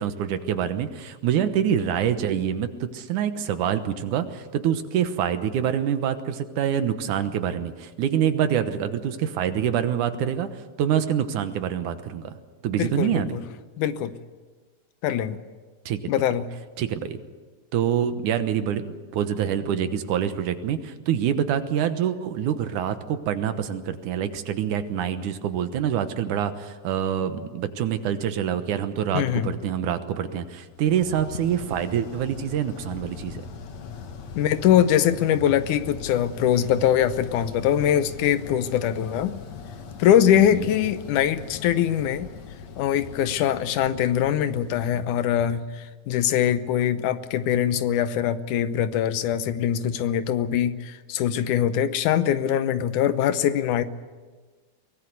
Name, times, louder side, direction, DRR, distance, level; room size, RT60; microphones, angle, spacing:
voice 1, 0.0-12.3 12.6-13.3 15.9-16.0 16.8-17.2 17.7-33.4 40.4-40.7, right 9 dB, 85° right, 9 dB, 2.7 m, -26 dB
voice 2, 12.8-13.4 13.8-14.1 15.0-15.4 16.1-16.5 29.1-29.5 34.4-39.3 40.0-42.3 42.8-53.8, left 10 dB, 85° left, 12 dB, 2.4 m, -22 dB
sound 1, 30.8-45.8, left 5 dB, 65° left, 2.7 m, -40 dB
23.0 x 18.0 x 8.1 m, 1.4 s
omnidirectional pair, 3.5 m